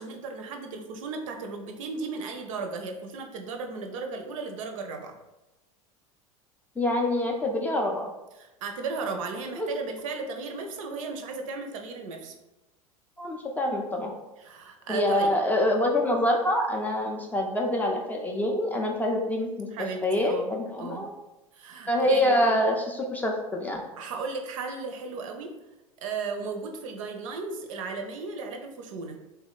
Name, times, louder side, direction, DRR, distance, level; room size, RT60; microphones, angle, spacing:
voice 1, 0.0-5.2 8.4-12.3 14.4-15.4 19.7-21.1 21.5-22.6 24.0-25.5 26.0-29.2, right 4 dB, 65° right, 4 dB, 0.4 m, -35 dB
voice 2, 6.8-8.1 9.6-9.7 13.2-14.1 14.9-19.7 20.0-21.1 21.9-23.8, left 1 dB, 10° left, 1 dB, 0.3 m, -25 dB
3.5 x 2.1 x 2.3 m, 1.0 s
figure-of-eight pair, 80°, 18 cm